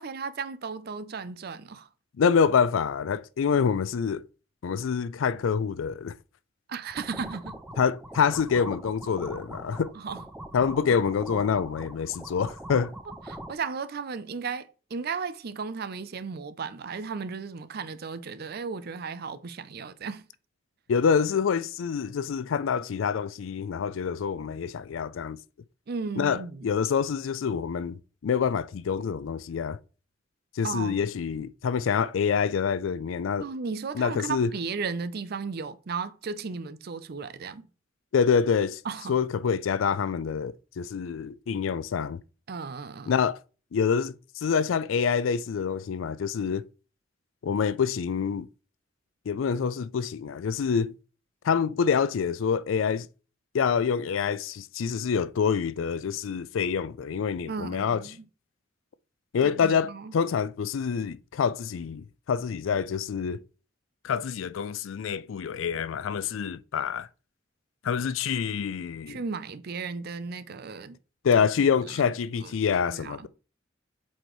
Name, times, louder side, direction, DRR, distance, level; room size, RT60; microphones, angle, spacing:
voice 1, 0.0-1.9 6.7-7.6 10.0-10.2 13.3-20.2 25.9-26.7 30.6-31.0 33.4-37.7 38.8-39.2 42.5-43.2 57.5-58.3 59.4-60.1 69.1-71.0 71.4-71.7 72.0-72.1 72.4-72.5 72.9-73.3, right 5 dB, 55° right, 0.5 m, -35 dB
voice 2, 2.2-4.2 4.6-6.1 7.8-9.9 10.5-12.9 20.9-25.4 26.2-29.8 30.5-33.5 33.9-34.5 38.1-38.8 39.1-42.2 43.1-43.4 43.7-46.6 47.4-48.5 49.3-51.0 51.4-53.1 53.5-58.0 59.3-63.4 64.0-67.1 67.8-69.2 71.2-73.3, left 6 dB, 80° left, 0.4 m, -26 dB
sound 1, 6.9-13.5, right 1 dB, 5° right, 0.5 m, -42 dB
7.9 x 4.3 x 3.0 m
head